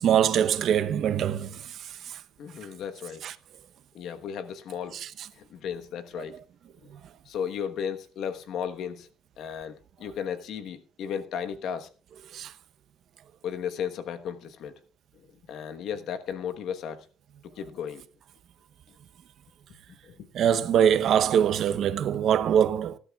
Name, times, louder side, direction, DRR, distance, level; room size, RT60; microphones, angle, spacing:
voice 1, 0.0-1.8 2.1-2.2 3.2-3.3 4.9-5.1 12.3-12.5 20.3-23.0, right 9 dB, 65° right, 0.8 m, -23 dB
voice 2, 2.4-3.3 3.9-5.0 5.3-6.3 6.8-6.9 7.2-9.1 9.4-11.9 13.4-14.7 15.1-17.0 17.6-18.0 19.9-20.3, left 8 dB, 75° left, 1.2 m, -35 dB
19.5 x 12.0 x 2.4 m
cardioid pair, 105°, 0 cm